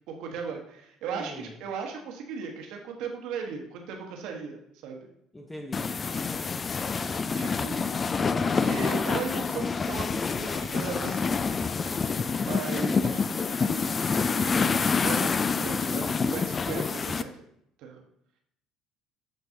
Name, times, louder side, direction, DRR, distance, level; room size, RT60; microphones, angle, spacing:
voice 1, 0.1-5.0 7.4-7.8 8.4-11.4 12.4-13.3 14.3-17.3 17.8-18.0, right 6 dB, 60° right, 2 dB, 1.2 m, -37 dB
voice 2, 1.1-1.6 5.3-6.6, left 1 dB, 10° left, 2 dB, 0.9 m, -43 dB
sound 1, 5.7-17.2, left 5 dB, 30° left, 0.4 m, -27 dB
13.0 x 4.6 x 2.8 m, 0.74 s
figure-of-eight pair, 55°, 0 cm